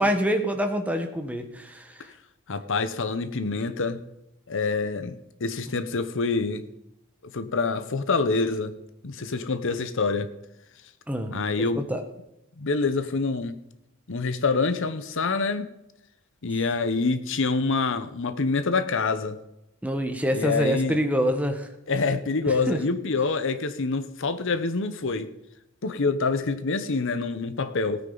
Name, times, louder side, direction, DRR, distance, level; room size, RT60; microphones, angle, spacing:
voice 1, 0.0-1.9 11.1-11.3 11.7-12.0 19.8-21.7 22.5-22.8, equal, 5° right, 5 dB, 1.1 m, -26 dB
voice 2, 2.5-4.0 4.5-6.6 7.2-8.7 9.0-10.3 11.3-11.8 12.6-13.6 14.1-15.7 16.4-19.4 20.3-21.0 21.9-25.3 25.8-28.0, left 4 dB, 60° left, 12 dB, 0.9 m, -26 dB
17.0 x 9.5 x 4.0 m, 0.89 s
head